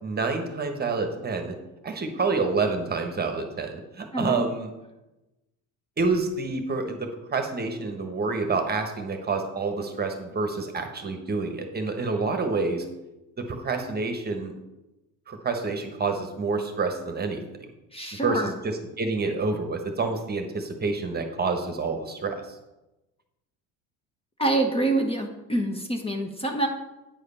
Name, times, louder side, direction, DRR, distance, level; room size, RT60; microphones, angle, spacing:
voice 1, 0.0-1.6 1.8-4.7 6.0-12.9 13.4-14.5 15.3-17.7 18.2-22.6, right 4 dB, 25° right, 5 dB, 1.2 m, -28 dB
voice 2, 4.1-4.5 17.9-18.5 24.4-26.7, right 2 dB, 15° left, 4 dB, 1.0 m, -26 dB
9.1 x 4.9 x 5.5 m, 1.0 s
cardioid pair, 110°, 36 cm